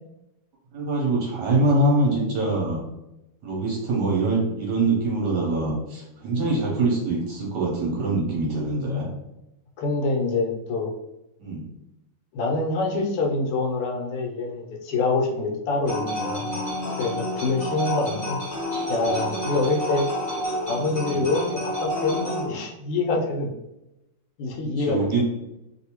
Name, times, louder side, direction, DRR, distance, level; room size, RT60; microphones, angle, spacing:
voice 1, 0.7-2.8 3.4-9.1 11.4-11.6 21.2-21.3 24.8-25.2, right 2 dB, 65° right, -3 dB, 1.2 m, -24 dB
voice 2, 9.8-10.9 12.3-16.6 17.0-18.4 18.9-20.1 20.6-23.5 24.4-25.2, left 3 dB, 90° left, 1 dB, 1.6 m, -26 dB
sound 1, 15.8-22.5, equal, 40° left, 0.8 m, -29 dB
3.4 x 2.6 x 2.8 m, 0.90 s
omnidirectional pair, 2.4 m